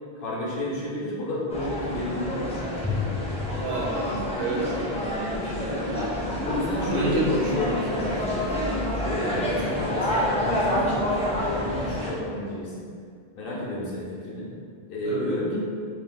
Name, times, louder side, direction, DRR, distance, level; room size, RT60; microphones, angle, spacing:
voice 1, 0.2-2.9 6.5-8.5 8.9-11.0 11.3-12.8 13.3-14.5 14.9-15.6, left 1 dB, 65° left, -5 dB, 0.8 m, -30 dB
sound 1, 1.5-12.1, left 1 dB, 10° left, 0.3 m, -28 dB
voice 2, 3.6-6.4 6.8-8.2 9.3-9.5 15.0-15.3, right 2 dB, 70° right, -4 dB, 0.8 m, -31 dB
2.3 x 2.3 x 3.4 m, 2.2 s
omnidirectional pair, 1.0 m